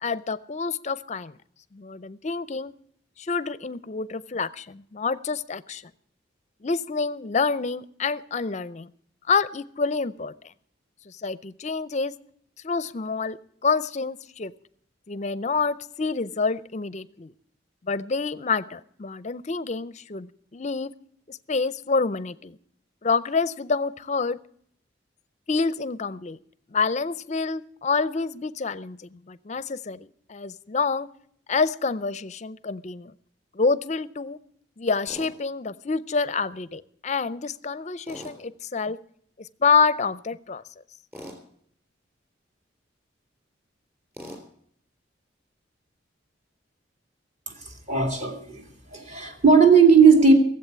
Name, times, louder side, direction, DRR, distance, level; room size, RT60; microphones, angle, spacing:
voice 1, 0.0-1.4 1.7-2.7 3.2-5.8 6.6-8.9 9.3-10.3 11.1-12.1 12.6-13.4 13.6-14.5 15.1-17.3 17.9-20.9 21.3-22.5 23.0-24.4 25.5-26.4 26.7-31.1 31.5-33.1 33.5-34.4 34.8-39.0 39.6-40.6, left 4 dB, 35° left, 17 dB, 0.5 m, -27 dB
Tools, 35.1-35.3 38.1-38.4 41.1-41.4 44.1-44.4, equal, 15° right, 3.6 m, -40 dB
voice 2, 47.6-48.6 48.9-50.3, right 5 dB, 35° right, 3 dB, 2.4 m, -17 dB
17.0 x 7.9 x 8.1 m, 0.64 s
head